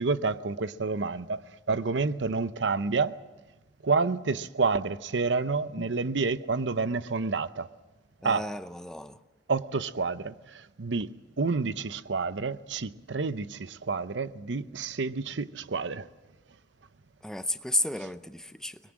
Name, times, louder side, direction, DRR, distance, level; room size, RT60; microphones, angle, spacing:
voice 1, 0.0-1.4 1.7-3.1 3.8-7.7 8.2-8.4 9.5-11.1 11.4-16.1, right 4 dB, 90° right, 0.7 m, -29 dB
voice 2, 8.2-9.2 17.2-18.8, left 1 dB, 5° left, 0.7 m, -32 dB
23.5 x 21.5 x 7.5 m
head